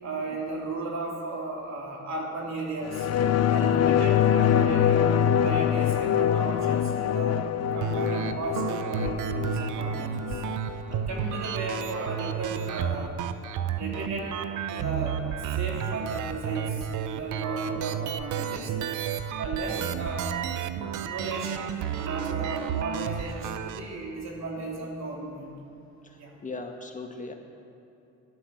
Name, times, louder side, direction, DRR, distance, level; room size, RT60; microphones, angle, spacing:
voice 1, 0.0-3.1 3.5-5.1 5.4-7.4 7.7-10.4 10.9-13.1 13.8-14.3 14.7-15.2 15.5-18.7 19.4-20.3 21.0-21.7 21.9-25.5 26.2-26.3, right 3 dB, 65° right, -1 dB, 3.3 m, -35 dB
sound 1, 2.9-11.9 12.2-12.3, left 9 dB, 55° left, 0.7 m, -25 dB
sound 2, 7.8-23.8, right 9 dB, 85° right, 0.8 m, -32 dB
voice 2, 26.0-27.3, left 3 dB, 25° left, 3 dB, 1.6 m, -40 dB
13.5 x 11.5 x 7.3 m, 2.8 s
cardioid pair, 90°, 30 cm